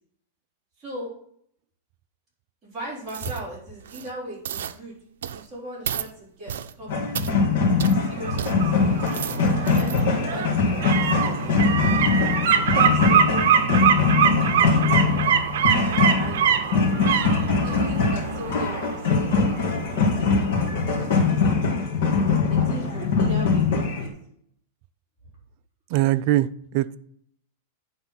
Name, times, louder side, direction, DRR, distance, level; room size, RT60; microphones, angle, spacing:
voice 1, 0.8-1.1 2.6-4.9 5.3-9.0 9.8-11.8 12.8-14.0 14.4-15.4 15.7-17.2 17.6-19.4 20.1-20.7 21.3-21.7 22.5-24.1, right 1 dB, 10° right, -8 dB, 4.0 m, -39 dB
sound 1, 3.1-3.4 3.8-4.1 4.4-4.8 5.2-5.5 5.8-6.1 6.5-6.7 7.1-7.3 7.8-8.0 8.4-8.5 8.9-10.0 10.5-10.6, right 9 dB, 85° right, 0.5 m, -33 dB
sound 2, 6.9-24.1, left 4 dB, 60° left, 2.0 m, -22 dB
sound 3, 8.0-20.8 21.1-21.2, right 8 dB, 60° right, 0.8 m, -24 dB
voice 2, 25.9-27.0, right 15 dB, 40° right, 14 dB, 0.3 m, -22 dB
9.6 x 3.8 x 5.9 m, 0.66 s
supercardioid pair, 170°, 0 cm